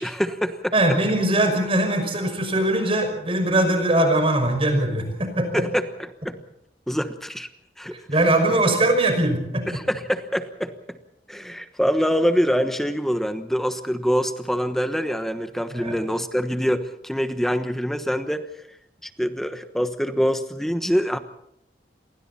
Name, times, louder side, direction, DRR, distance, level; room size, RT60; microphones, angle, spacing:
voice 1, 0.0-0.7 5.5-5.8 6.2-6.3 6.9-7.5 7.8-7.9 9.7-10.7 11.3-18.7 19.0-21.2, equal, ahead, 8 dB, 1.2 m, -25 dB
voice 2, 0.7-5.6 8.1-9.8 15.7-15.9, right 1 dB, 30° right, 6 dB, 5.8 m, -21 dB
29.5 x 24.0 x 4.3 m, 0.75 s
head